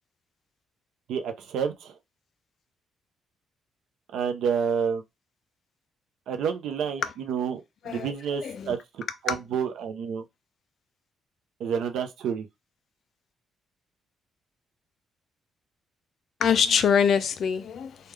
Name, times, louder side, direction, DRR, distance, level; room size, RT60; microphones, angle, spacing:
voice 1, 1.1-2.0 4.1-5.0 6.3-10.2 11.6-12.5, right 7 dB, 80° right, 0.6 m, -29 dB
voice 2, 8.4-8.8 9.3-9.4 16.4-18.1, left 7 dB, 60° left, 0.5 m, -24 dB
3.5 x 2.2 x 3.2 m
cardioid pair, 90°, 0 cm